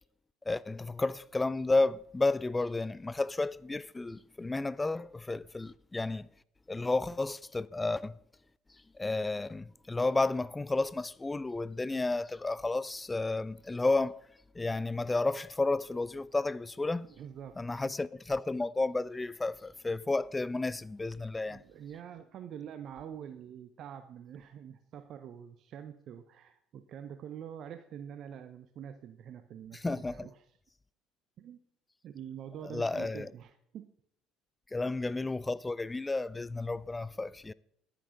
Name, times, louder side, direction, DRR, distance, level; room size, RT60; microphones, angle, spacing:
voice 1, 0.5-6.3 6.7-8.2 8.9-14.2 14.5-17.1 17.6-21.6 29.7-30.3 32.6-33.3 34.7-37.5, left 3 dB, 15° left, 0.4 m, -32 dB
voice 2, 17.2-17.9 21.3-30.4 31.4-31.6 32.0-33.9, right 9 dB, 55° right, 0.6 m, -46 dB
11.0 x 10.0 x 3.7 m
hypercardioid pair, 60°, 0 cm